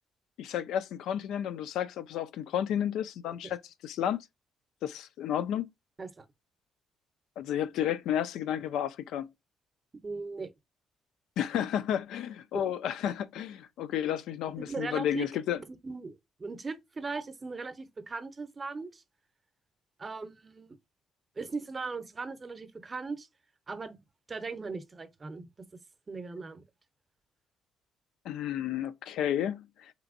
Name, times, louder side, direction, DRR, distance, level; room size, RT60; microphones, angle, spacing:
voice 1, 0.4-4.3 4.8-5.7 7.4-9.3 11.4-15.6 28.2-29.9, left 10 dB, 85° left, 0.3 m, -32 dB
voice 2, 10.0-10.5 12.5-12.6 14.6-15.2 15.5-19.0 20.0-20.7 21.4-23.3 23.7-24.0 24.3-25.5 26.1-26.6, right 4 dB, 30° right, 0.6 m, -38 dB
3.3 x 3.0 x 2.4 m
cardioid pair, 90°, 0 cm